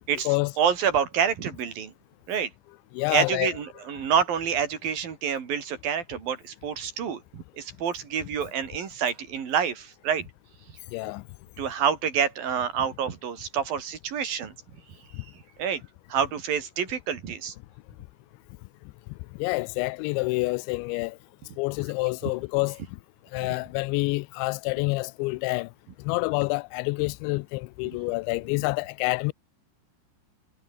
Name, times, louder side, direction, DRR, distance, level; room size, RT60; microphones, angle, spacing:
voice 1, 0.1-1.9 2.3-2.5 3.1-10.3 10.7-10.8 11.6-14.5 14.9-15.8 16.1-17.5 22.3-22.4 23.4-23.5, right 7 dB, 50° right, 4.7 m, -28 dB
voice 2, 2.9-3.5 10.9-11.2 15.1-15.2 19.3-21.2 21.6-22.8 23.3-25.7 26.0-29.3, left 25 dB, 90° left, 2.6 m, -27 dB
omnidirectional pair, 5.8 m